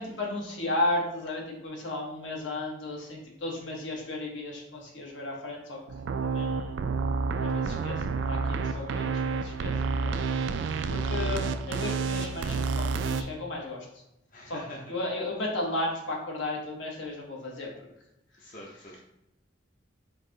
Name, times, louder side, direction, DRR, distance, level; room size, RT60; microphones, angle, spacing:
voice 1, 0.0-5.8 6.2-6.8 7.4-13.9 14.5-14.6 14.9-17.9 18.5-18.6, left 2 dB, 75° left, -1 dB, 1.2 m, -34 dB
sound 1, 5.9-13.2, right 4 dB, 70° right, 0.3 m, -29 dB
voice 2, 11.1-11.6 14.3-14.8 18.4-19.0, left 1 dB, 45° left, -3 dB, 0.7 m, -45 dB
4.5 x 2.8 x 3.7 m, 0.84 s
head